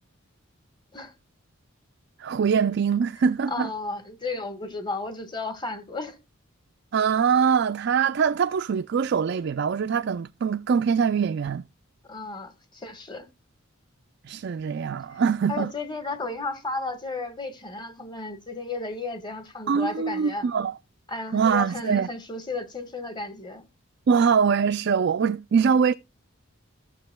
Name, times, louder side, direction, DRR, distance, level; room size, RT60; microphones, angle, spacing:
voice 1, 2.2-3.7 6.9-11.7 14.2-15.7 19.7-20.7 21.3-22.1 24.1-25.9, right 6 dB, 55° right, 0.4 m, -23 dB
voice 2, 3.5-6.2 12.1-13.3 15.5-20.5 21.1-23.6, left 3 dB, 20° left, 1.3 m, -33 dB
14.5 x 6.9 x 2.2 m
head